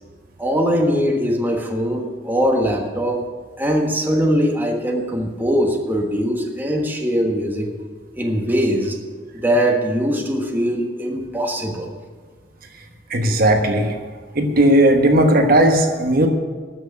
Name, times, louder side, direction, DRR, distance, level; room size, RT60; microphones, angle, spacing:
voice 1, 0.4-3.2 3.6-7.7 8.2-9.0 9.3-11.9, equal, 10° right, 1 dB, 1.3 m, -21 dB
voice 2, 13.1-13.9 14.3-16.3, right 1 dB, 55° right, 4 dB, 1.2 m, -16 dB
13.0 x 6.2 x 8.2 m, 1.5 s
head